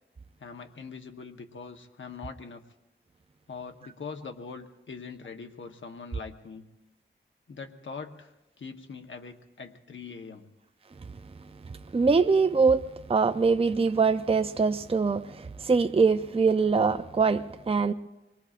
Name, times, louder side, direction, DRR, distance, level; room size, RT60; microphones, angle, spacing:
voice 1, 0.4-2.6 3.5-6.6 7.5-10.5, left 5 dB, 80° left, 1.1 m, -42 dB
voice 2, 11.9-17.9, right 4 dB, 30° right, 0.5 m, -23 dB
25.5 x 22.0 x 2.5 m
wide cardioid pair, 75°, 20 cm